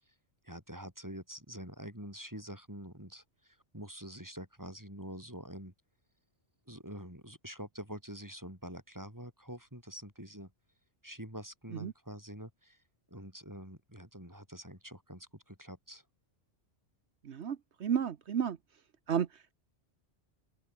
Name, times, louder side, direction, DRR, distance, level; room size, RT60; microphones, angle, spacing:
voice 1, 0.4-5.7 6.7-10.5 11.0-12.8 13.1-16.0, equal, 15° right, 7.5 m, -46 dB
voice 2, 17.2-18.6 19.1-19.3, right 8 dB, 75° right, 1.3 m, -32 dB
open air
omnidirectional pair, 1.2 m